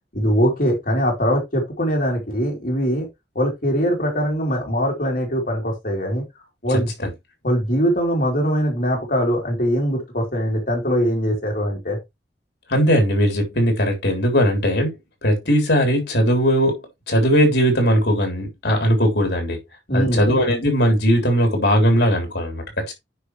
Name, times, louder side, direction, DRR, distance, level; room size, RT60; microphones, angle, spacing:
voice 1, 0.1-3.1 3.4-6.2 6.6-6.9 7.4-12.0 19.9-20.3, equal, 50° left, 3.5 m, -21 dB
voice 2, 6.7-7.1 12.7-14.9 15.2-19.6 19.9-22.9, equal, 65° left, 3.5 m, -19 dB
9.8 x 5.1 x 3.2 m
head